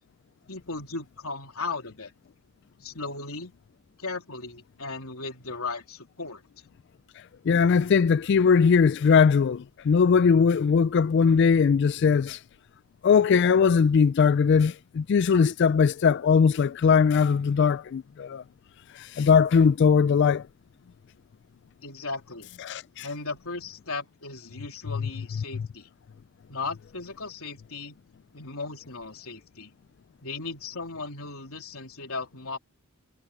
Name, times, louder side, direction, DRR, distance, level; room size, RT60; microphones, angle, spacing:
voice 1, 0.5-2.1 2.8-3.5 4.0-6.4 21.8-22.5 23.0-25.9 26.5-28.0 28.3-29.7 30.2-32.6, left 3 dB, 75° left, 3.5 m, -36 dB
voice 2, 7.5-12.4 13.0-18.4 18.9-20.4 22.6-23.1, left 6 dB, 50° left, 0.3 m, -20 dB
head